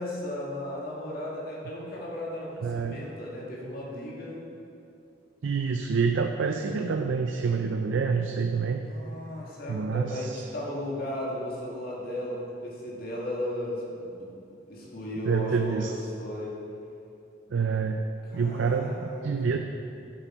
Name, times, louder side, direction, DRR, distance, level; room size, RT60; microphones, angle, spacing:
voice 1, 0.0-4.4 8.8-14.3 14.7-16.6 18.3-19.6, left 1 dB, 55° left, -4 dB, 2.1 m, -35 dB
voice 2, 2.6-3.0 5.4-8.8 9.7-10.4 15.3-15.9 17.5-18.1 18.3-19.6, right 5 dB, 80° right, 5 dB, 0.5 m, -27 dB
9.2 x 8.1 x 4.5 m, 2.7 s
head